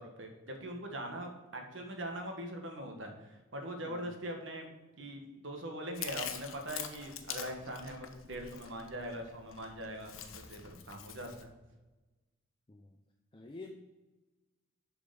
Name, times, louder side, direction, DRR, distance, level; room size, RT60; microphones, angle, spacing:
voice 1, 0.0-4.7 5.0-11.5, right 1 dB, 60° right, 3 dB, 1.5 m, -42 dB
Chewing mastication, 5.9-11.4, left 8 dB, 75° left, 0.8 m, -45 dB
voice 2, 13.3-13.8, left 2 dB, 25° left, 3 dB, 0.5 m, -49 dB
6.9 x 5.1 x 6.9 m, 1.1 s
head